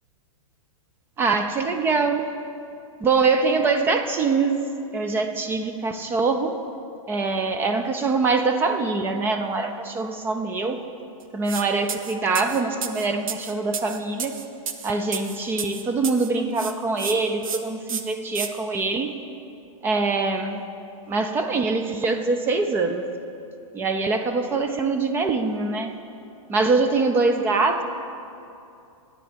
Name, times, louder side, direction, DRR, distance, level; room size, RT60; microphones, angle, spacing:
voice 1, 1.2-2.3 3.0-4.6 4.9-6.6 7.1-10.8 11.3-14.4 14.8-19.1 19.8-20.6 21.1-23.1 23.7-25.9 26.5-27.8, right 4 dB, 10° right, 7 dB, 0.4 m, -23 dB
sound 1, 11.5-11.6 11.9-16.3 16.6-17.1 17.4-17.6 17.9-18.5, right 7 dB, 75° right, 0.9 m, -31 dB
10.5 x 8.9 x 6.7 m, 2.7 s
hypercardioid pair, 150°, 18 cm